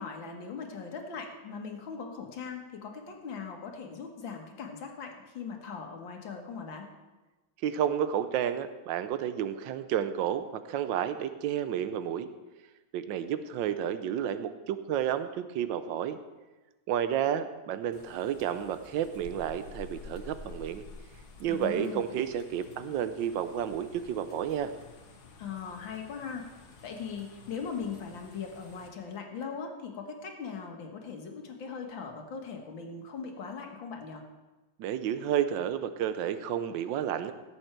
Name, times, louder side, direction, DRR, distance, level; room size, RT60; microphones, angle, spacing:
voice 1, 0.0-6.9 21.5-22.1 25.4-26.5 26.8-34.2, left 6 dB, 85° left, 3 dB, 2.2 m, -40 dB
voice 2, 7.6-12.3 12.9-16.2 16.9-20.8 21.4-24.7 34.8-37.3, right 9 dB, 80° right, 11 dB, 1.4 m, -31 dB
sound 1, 17.9-28.9, left 3 dB, 60° left, 1.8 m, -50 dB
17.5 x 7.9 x 4.5 m, 1.2 s
omnidirectional pair, 2.1 m